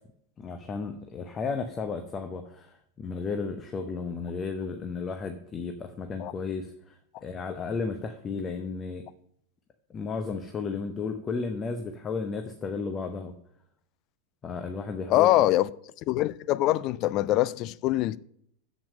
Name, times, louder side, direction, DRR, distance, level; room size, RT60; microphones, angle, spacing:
voice 1, 0.4-9.0 9.9-13.4 14.4-15.3, left 4 dB, 25° left, 0.7 m, -33 dB
voice 2, 15.1-15.7 16.1-18.2, left 15 dB, 40° left, 0.3 m, -23 dB
7.3 x 7.3 x 6.4 m
figure-of-eight pair, 90°, 0 cm